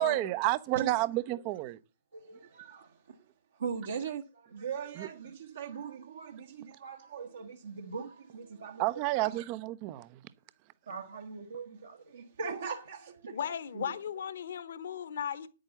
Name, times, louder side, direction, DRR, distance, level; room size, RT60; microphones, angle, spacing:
voice 1, 0.0-1.8 5.0-5.1 8.8-10.2, right 18 dB, 30° right, 0.7 m, -30 dB
voice 2, 2.1-2.9 3.6-8.8 9.2-9.3 10.9-13.4 13.7-13.9, right 6 dB, 60° right, 1.3 m, -40 dB
voice 3, 13.3-15.5, left 8 dB, 55° left, 1.2 m, -36 dB
9.7 x 8.7 x 7.0 m
figure-of-eight pair, 125°, 0 cm